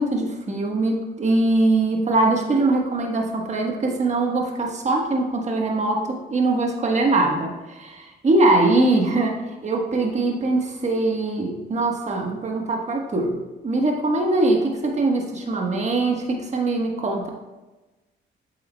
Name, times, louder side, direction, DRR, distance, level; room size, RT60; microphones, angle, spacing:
voice 1, 0.0-13.3 13.6-17.3, right 2 dB, 35° right, 1 dB, 1.3 m, -22 dB
8.2 x 7.3 x 2.3 m, 1.1 s
cardioid pair, 90°, 20 cm